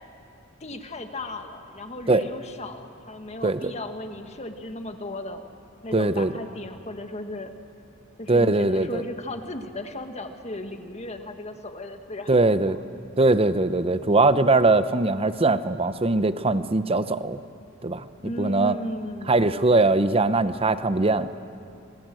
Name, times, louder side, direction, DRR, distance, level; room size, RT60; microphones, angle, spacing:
voice 1, 0.6-5.4 5.8-7.5 8.2-12.6 18.2-19.4, left 1 dB, 35° left, 6 dB, 1.6 m, -36 dB
voice 2, 5.9-6.3 8.3-9.0 12.3-12.8 13.2-17.4 17.8-18.1 18.4-18.8 19.3-21.3, right 2 dB, 30° right, 12 dB, 0.7 m, -21 dB
27.5 x 21.0 x 7.7 m, 2.5 s
head